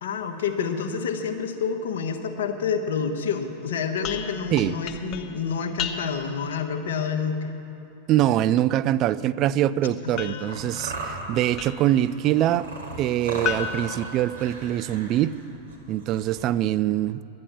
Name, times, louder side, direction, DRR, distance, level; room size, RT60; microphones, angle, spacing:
voice 1, 0.0-7.5 10.0-10.6, left 6 dB, 60° left, 5 dB, 1.1 m, -28 dB
sound 1, 4.0-6.4 10.2-12.0 13.4-14.9, left 8 dB, 35° left, 0.8 m, -35 dB
voice 2, 8.1-12.7 13.0-15.3 15.9-17.2, right 12 dB, 35° right, 17 dB, 0.4 m, -23 dB
sound 2, 10.5-16.4, right 3 dB, 70° right, 2.1 m, -37 dB
12.0 x 9.9 x 8.8 m, 2.8 s
figure-of-eight pair, 90°, 0 cm